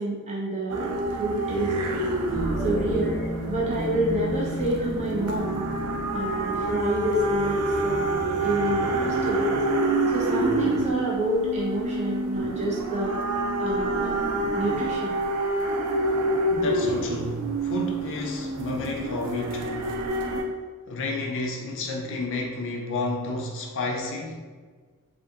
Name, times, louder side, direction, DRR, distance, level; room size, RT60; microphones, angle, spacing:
voice 1, 0.0-2.1 2.6-3.2 3.5-5.6 6.1-9.5 10.1-13.2 13.6-14.1 14.5-15.2, right 1 dB, 30° right, -6 dB, 0.8 m, -28 dB
sound 1, 0.7-20.4, right 2 dB, 90° right, 0.4 m, -27 dB
sound 2, 2.3-7.0, right 1 dB, 10° left, 1.4 m, -34 dB
voice 2, 16.5-19.9 20.9-24.5, left 2 dB, 60° left, 0 dB, 0.4 m, -31 dB
2.7 x 2.4 x 2.4 m, 1.5 s
head